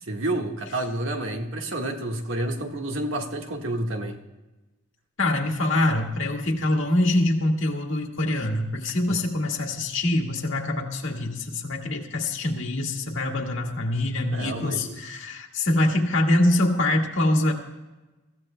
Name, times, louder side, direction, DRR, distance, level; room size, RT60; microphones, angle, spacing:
voice 1, 0.0-4.2 9.1-9.2 14.3-15.0, right 1 dB, 65° right, 3 dB, 1.6 m, -29 dB
voice 2, 5.2-17.5, left 1 dB, 70° left, 2 dB, 1.8 m, -24 dB
24.0 x 15.0 x 2.2 m, 1.1 s
head